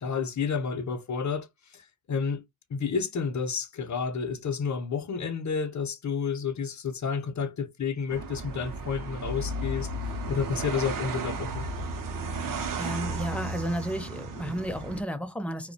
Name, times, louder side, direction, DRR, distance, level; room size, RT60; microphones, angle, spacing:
voice 1, 0.0-1.5 1.7-2.4 2.7-9.9 10.3-11.6, left 5 dB, 55° left, 0.6 m, -30 dB
sound 1, 8.1-15.0, right 2 dB, 65° right, 0.6 m, -34 dB
voice 2, 12.8-15.7, equal, 5° left, 0.4 m, -32 dB
2.3 x 2.1 x 2.6 m
wide cardioid pair, 80°, 35 cm